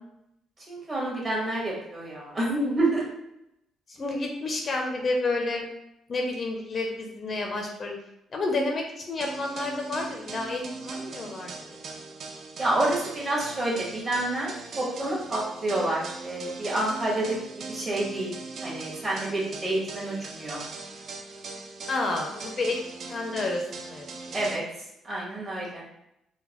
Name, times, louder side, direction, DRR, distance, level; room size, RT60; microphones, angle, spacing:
voice 1, 0.7-3.0 12.6-17.4 17.7-18.3 18.6-20.6 24.3-24.6 25.0-25.8, right 1 dB, 30° right, -5 dB, 1.4 m, -28 dB
voice 2, 3.9-5.7 6.1-8.0 8.3-12.0 21.9-22.8 23.1-24.4, left 2 dB, 35° left, 2 dB, 0.5 m, -30 dB
sound 1, 9.2-24.6, right 4 dB, 55° right, 0.4 m, -40 dB
3.8 x 2.1 x 2.9 m, 0.83 s
cardioid pair, 120°, 0 cm